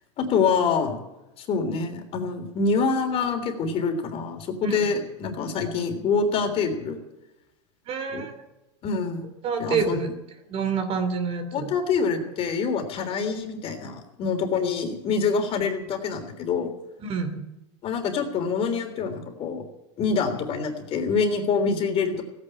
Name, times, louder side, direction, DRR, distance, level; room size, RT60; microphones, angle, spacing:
voice 1, 0.2-1.0 1.4-7.0 8.1-8.2 8.8-9.3 9.6-10.1 11.5-16.7 17.8-19.6 20.0-22.2, left 5 dB, 40° left, 5 dB, 3.4 m, -26 dB
voice 2, 7.9-8.5 9.4-10.1 10.5-11.7 17.0-17.4, right 5 dB, 40° right, 8 dB, 3.0 m, -28 dB
16.5 x 9.7 x 8.9 m, 0.95 s
supercardioid pair, 125°, 15 cm